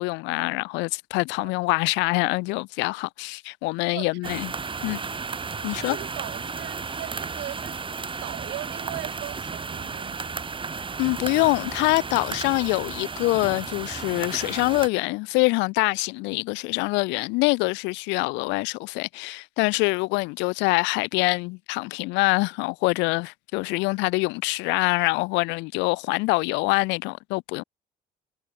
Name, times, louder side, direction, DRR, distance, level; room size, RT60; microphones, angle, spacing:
voice 1, 0.0-4.5 4.8-5.0 5.6-6.0 11.0-27.6, left 25 dB, 70° left, 0.7 m, -25 dB
sound 1, 4.2-14.9, right 5 dB, 25° right, 1.4 m, -34 dB
voice 2, 5.7-7.9 8.2-10.3, right 16 dB, 65° right, 4.9 m, -39 dB
hypercardioid pair, 60°, 19 cm